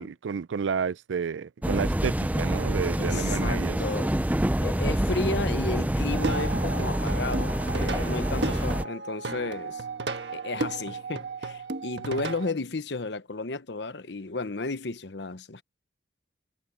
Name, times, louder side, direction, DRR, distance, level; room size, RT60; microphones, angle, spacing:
voice 1, 0.0-3.8, right 6 dB, 90° right, 0.4 m, -31 dB
sound 1, 1.6-8.8, right 1 dB, 10° right, 0.5 m, -27 dB
voice 2, 3.0-4.2 4.6-9.8 10.3-15.6, left 3 dB, 65° left, 1.0 m, -33 dB
Plucked string instrument, 6.1-12.5, right 2 dB, 65° right, 1.5 m, -34 dB
head